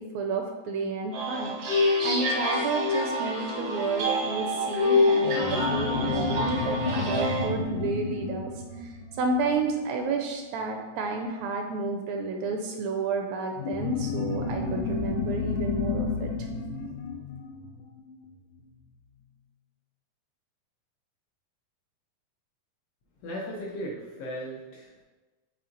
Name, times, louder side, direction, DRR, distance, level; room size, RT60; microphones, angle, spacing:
voice 1, 0.0-1.5 2.0-8.5 8.8-16.3, right 3 dB, 80° right, 3 dB, 1.7 m, -31 dB
sound 1, 1.1-7.5, left 2 dB, 65° right, 1.0 m, -26 dB
sound 2, 5.2-10.2 13.6-18.5, left 4 dB, 90° left, 2.1 m, -31 dB
voice 2, 23.2-25.0, equal, 75° left, -3 dB, 1.5 m, -37 dB
5.7 x 4.4 x 3.8 m, 1.3 s
omnidirectional pair, 3.4 m